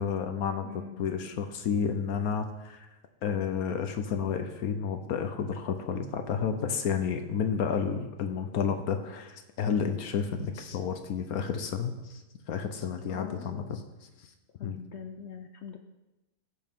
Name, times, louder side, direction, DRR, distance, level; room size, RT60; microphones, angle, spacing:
voice 1, 0.0-0.6 1.0-2.9 3.2-12.2 12.5-13.8 14.6-14.8, left 6 dB, 75° left, 7 dB, 1.2 m, -31 dB
voice 2, 0.6-1.1 9.7-10.3 13.1-13.9 14.5-15.8, left 7 dB, 60° left, 6 dB, 0.8 m, -43 dB
15.5 x 6.7 x 3.6 m, 1.0 s
omnidirectional pair, 1.6 m